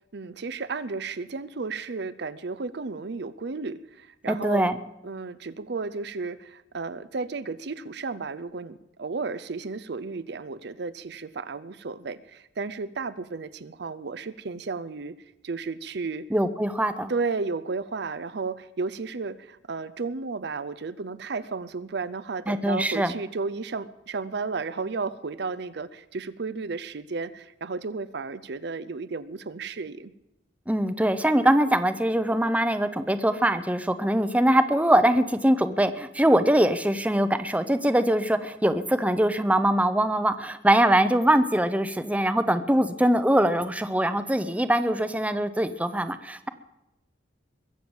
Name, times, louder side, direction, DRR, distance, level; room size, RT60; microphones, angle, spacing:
voice 1, 0.1-4.7 5.0-15.1 15.4-16.3 17.1-30.1, right 4 dB, 60° right, 14 dB, 0.6 m, -33 dB
voice 2, 4.3-4.8 16.3-17.1 22.5-23.1 30.7-46.5, right 1 dB, 10° right, 10 dB, 0.7 m, -22 dB
22.0 x 7.7 x 7.2 m, 0.88 s
head